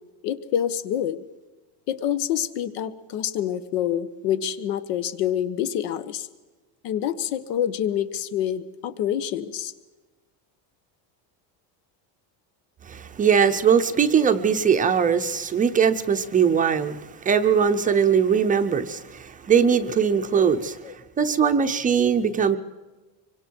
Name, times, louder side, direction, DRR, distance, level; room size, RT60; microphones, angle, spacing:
voice 1, 0.2-1.2 1.9-6.3 6.8-9.7 20.8-20.9, left 10 dB, 85° left, 13 dB, 1.5 m, -27 dB
voice 2, 12.9-20.8 21.2-22.6, right 7 dB, 20° right, 7 dB, 0.6 m, -21 dB
25.5 x 24.5 x 4.6 m, 1.2 s
cardioid pair, 175°, 46 cm